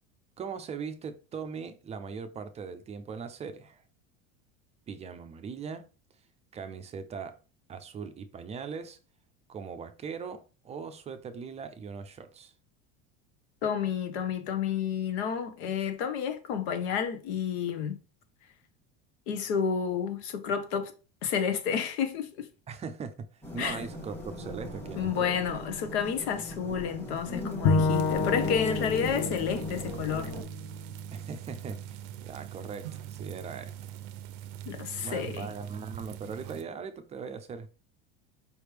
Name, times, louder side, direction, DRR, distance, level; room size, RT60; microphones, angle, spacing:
voice 1, 0.4-3.8 4.9-5.9 6.5-7.4 7.7-9.0 9.5-12.5 22.7-25.5 31.1-34.0 35.0-37.7, right 5 dB, 20° right, 0.4 m, -40 dB
voice 2, 13.6-18.0 19.3-20.9 21.2-22.5 23.6-23.8 25.0-30.3 34.7-35.5, left 7 dB, 85° left, 1.1 m, -30 dB
sound 1, 23.4-30.4, left 1 dB, 5° left, 1.2 m, -39 dB
Bowed string instrument, 27.6-30.9, left 4 dB, 45° left, 0.8 m, -29 dB
sound 2, 27.9-36.6, right 11 dB, 75° right, 0.5 m, -42 dB
5.0 x 3.2 x 3.3 m
supercardioid pair, 140°, 32 cm